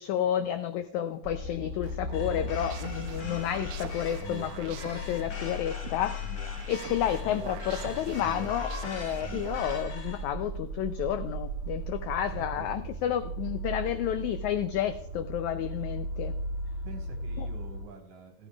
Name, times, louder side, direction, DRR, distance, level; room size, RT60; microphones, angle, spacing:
voice 1, 0.0-6.3 6.7-16.3 17.4-17.5, left 10 dB, 85° left, 9 dB, 1.6 m, -31 dB
sound 1, 1.2-17.8, equal, 45° left, 4.3 m, -37 dB
sound 2, 1.8-9.8, right 7 dB, 80° right, 1.5 m, -44 dB
sound 3, 2.1-10.2, left 5 dB, 60° left, 5.0 m, -44 dB
voice 2, 12.3-12.7 16.8-18.5, right 4 dB, 55° right, 3 dB, 2.2 m, -47 dB
14.5 x 13.0 x 2.3 m, 0.78 s
omnidirectional pair, 4.0 m